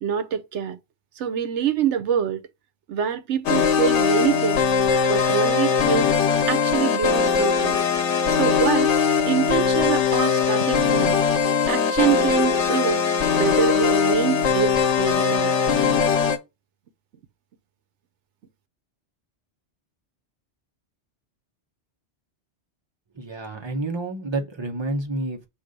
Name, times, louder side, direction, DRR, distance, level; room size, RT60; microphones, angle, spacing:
voice 1, 0.0-0.8 1.2-2.4 2.9-4.6 5.1-6.1 6.5-7.8 8.3-8.9 9.3-11.2 11.7-13.0 13.4-15.5, right 8 dB, 85° right, 1.0 m, -25 dB
Gras und Brennnesseln, 3.5-16.4, left 6 dB, 85° left, 1.1 m, -20 dB
voice 2, 23.1-25.5, right 2 dB, 25° right, 1.0 m, -29 dB
7.0 x 2.6 x 5.1 m
omnidirectional pair, 1.2 m